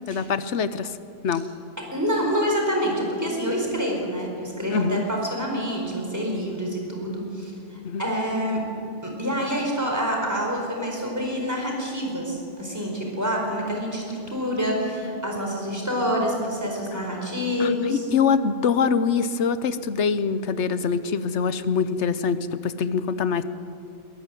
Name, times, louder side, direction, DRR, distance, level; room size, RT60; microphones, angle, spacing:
voice 1, 0.1-1.0 1.2-1.5 4.7-5.0 7.8-8.0 17.6-23.4, left 6 dB, 70° left, 13 dB, 1.1 m, -24 dB
voice 2, 1.9-8.6 9.0-18.0, equal, 15° right, -1 dB, 4.7 m, -27 dB
22.0 x 14.0 x 9.2 m, 2.6 s
omnidirectional pair, 1.3 m